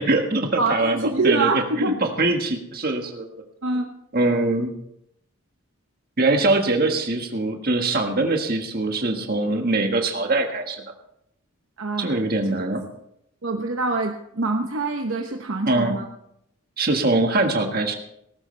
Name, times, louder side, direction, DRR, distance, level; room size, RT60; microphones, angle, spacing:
voice 1, 0.0-3.3 4.1-4.7 6.2-10.8 12.0-12.8 15.7-15.9 16.8-18.0, right 2 dB, 45° right, 4 dB, 1.6 m, -22 dB
voice 2, 0.6-1.9 3.6-3.9 11.8-12.6 13.4-16.0, right 3 dB, 60° right, 3 dB, 0.9 m, -25 dB
18.5 x 12.5 x 3.3 m, 0.77 s
head